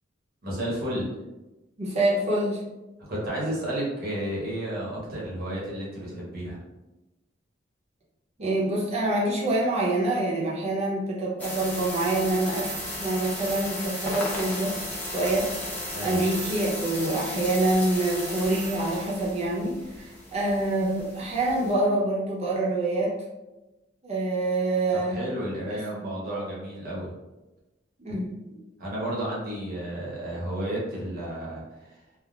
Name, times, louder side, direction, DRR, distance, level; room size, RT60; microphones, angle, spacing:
voice 1, 0.4-1.1 3.1-6.6 15.9-16.2 25.1-27.1 28.8-31.9, right 1 dB, 55° right, -6 dB, 1.1 m, -32 dB
voice 2, 1.8-2.6 8.4-12.7 13.0-14.8 15.1-15.5 16.0-23.1 24.0-25.2 25.5-26.1 28.0-28.3, right 2 dB, 35° right, -5 dB, 0.8 m, -26 dB
sound 1, 11.4-21.7, left 1 dB, 10° left, 0.7 m, -35 dB
3.4 x 2.1 x 2.4 m, 1.1 s
head